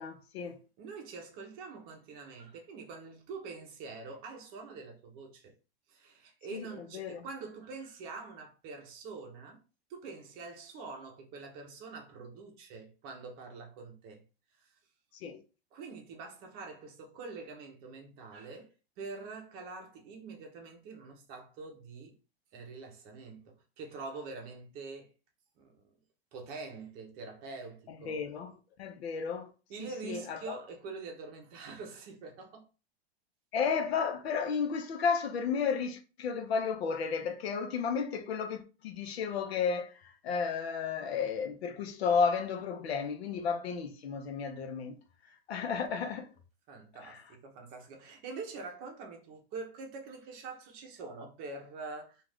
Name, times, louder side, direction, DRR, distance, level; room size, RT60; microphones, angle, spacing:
voice 1, 0.0-0.6 6.5-7.3 15.1-15.4 27.9-29.5 29.8-30.5 33.5-45.0 45.2-46.3 47.0-47.2, left 6 dB, 75° left, 0.7 m, -33 dB
voice 2, 0.8-5.5 5.9-9.6 9.9-14.2 14.6-14.7 15.7-22.2 22.5-25.1 25.6-25.8 26.3-28.2 29.7-32.6 46.7-52.2, right 4 dB, 30° right, 0.7 m, -45 dB
2.4 x 2.4 x 3.3 m
supercardioid pair, 150°, 31 cm